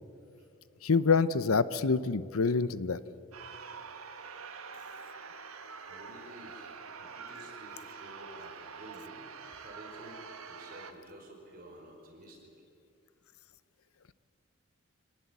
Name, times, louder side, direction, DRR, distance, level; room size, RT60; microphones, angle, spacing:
voice 1, 0.8-3.0, left 4 dB, 80° left, 16 dB, 0.8 m, -26 dB
sound 1, 3.3-10.9, right 5 dB, 80° right, 1.6 m, -46 dB
voice 2, 5.9-12.5, equal, 40° right, 1 dB, 5.1 m, -51 dB
26.5 x 19.0 x 8.3 m, 2.4 s
head